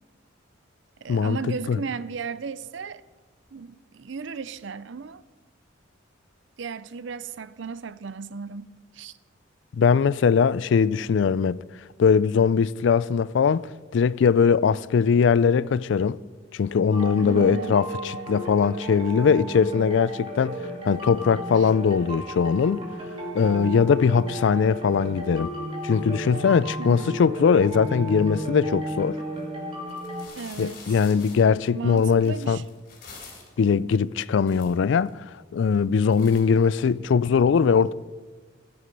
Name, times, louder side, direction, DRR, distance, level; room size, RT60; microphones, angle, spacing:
voice 1, 1.0-3.0 3.5-5.2 6.6-9.2 17.2-17.8 21.6-21.7 26.8-27.2 30.4-31.0 31.7-32.6, right 5 dB, 60° right, 0.5 m, -35 dB
voice 2, 9.7-11.6 12.0-16.2 16.5-20.6 20.8-22.8 23.3-25.5 25.8-29.2 30.6-32.6 33.6-35.2 35.5-37.9, left 6 dB, 60° left, 0.3 m, -21 dB
sound 1, 16.9-30.2, right 1 dB, 25° right, 1.9 m, -34 dB
sound 2, 29.4-29.5 29.9-33.6 34.2-34.3 34.4-35.1 35.6-35.9 36.1-37.3, left 4 dB, 45° left, 3.4 m, -46 dB
14.0 x 9.7 x 5.3 m
head